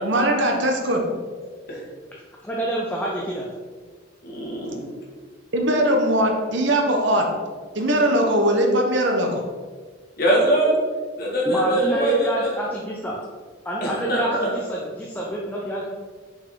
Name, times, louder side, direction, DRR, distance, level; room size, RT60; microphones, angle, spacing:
voice 1, 0.0-1.0 5.5-7.3 7.7-9.4, right 1 dB, 65° right, 2 dB, 1.1 m, -20 dB
voice 2, 2.4-3.5 11.5-13.2 13.6-15.9, right 1 dB, 10° left, -3 dB, 0.7 m, -27 dB
voice 3, 4.2-4.8 10.2-10.8 11.2-12.5 13.8-14.5, right 1 dB, 50° left, -3 dB, 1.9 m, -22 dB
6.3 x 5.8 x 3.8 m, 1.5 s
head